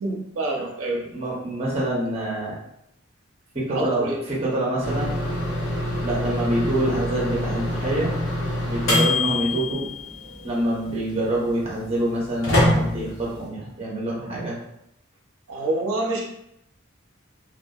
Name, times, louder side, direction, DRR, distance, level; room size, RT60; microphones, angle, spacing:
voice 1, 0.0-1.0 3.7-4.1 15.5-16.3, right 2 dB, 90° right, -1 dB, 0.5 m, -26 dB
voice 2, 0.9-2.6 3.5-5.2 6.0-8.1 8.7-9.9 10.4-14.5, right 1 dB, 30° right, -5 dB, 0.7 m, -26 dB
sound 1, 4.8-13.5, left 1 dB, 70° left, 0.9 m, -26 dB
2.6 x 2.3 x 2.3 m, 0.79 s
head